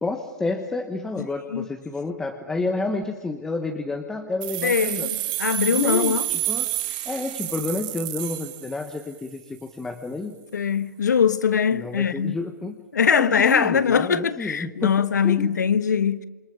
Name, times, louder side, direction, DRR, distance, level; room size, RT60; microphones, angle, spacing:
voice 1, 0.0-5.1 5.7-10.3 11.7-12.8 13.1-15.5, left 3 dB, 5° left, 1.2 m, -30 dB
voice 2, 1.1-1.7 4.6-6.3 10.5-12.4 12.9-16.2, left 7 dB, 85° left, 1.4 m, -22 dB
sound 1, 4.4-9.2, right 15 dB, 30° right, 1.9 m, -29 dB
27.5 x 24.0 x 8.7 m
hypercardioid pair, 155°, 9 cm